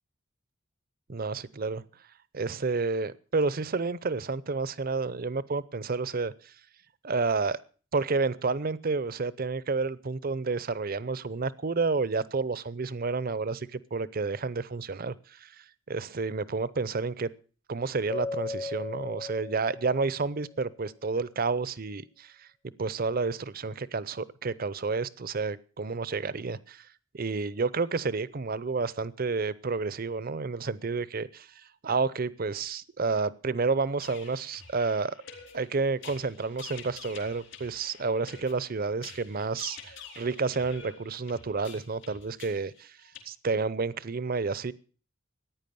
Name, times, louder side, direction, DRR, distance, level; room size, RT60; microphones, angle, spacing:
voice 1, 1.1-1.8 2.3-6.5 7.0-7.6 7.9-17.3 17.7-22.5 22.8-26.9 27.1-31.5 31.8-35.1 35.5-43.0 43.3-44.7, right 4 dB, 50° right, 18 dB, 0.7 m, -30 dB
Keyboard (musical), 18.1-20.6, left 3 dB, 20° left, 0.7 m, -37 dB
sound 1, 34.0-43.2, left 6 dB, 65° left, 3.4 m, -48 dB
14.5 x 9.9 x 6.8 m, 0.40 s
head